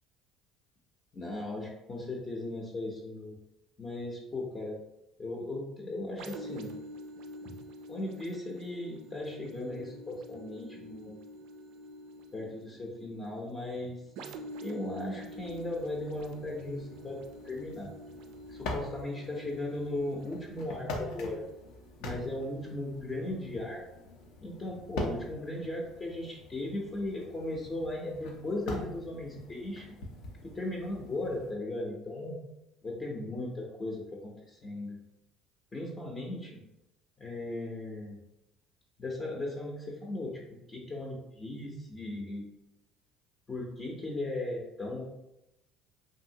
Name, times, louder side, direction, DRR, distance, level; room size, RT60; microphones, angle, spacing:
voice 1, 1.1-3.4 3.8-4.8 5.2-6.7 7.4-7.5 7.9-11.2 12.3-14.0 14.6-17.9 18.5-21.5 22.0-23.8 24.4-30.0 30.4-32.4 32.8-35.0 35.7-36.6 37.2-38.2 39.0-40.4 40.7-42.5 43.5-45.0, left 1 dB, 30° left, -2 dB, 0.6 m, -37 dB
sound 1, 6.2-23.7 24.2-24.4, equal, 75° right, 0.3 m, -48 dB
sound 2, 14.9-31.5, left 1 dB, 75° left, 0.6 m, -44 dB
2.7 x 2.6 x 2.7 m, 0.90 s
supercardioid pair, 95°, 0 cm